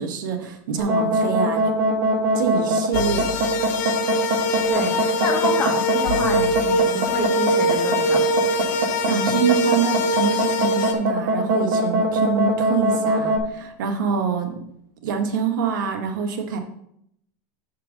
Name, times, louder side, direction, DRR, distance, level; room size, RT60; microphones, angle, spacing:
voice 1, 0.0-1.7 2.3-3.3 8.7-14.6 15.0-16.6, right 6 dB, 90° right, 4 dB, 1.4 m, -25 dB
sound 1, 0.8-13.4, right 1 dB, 70° right, 1.6 m, -22 dB
sound 2, 2.9-10.9, left 1 dB, 70° left, 1.1 m, -23 dB
voice 2, 4.7-8.4, left 2 dB, 20° left, 1 dB, 1.4 m, -28 dB
6.0 x 4.5 x 6.5 m, 0.72 s
supercardioid pair, 160°, 10 cm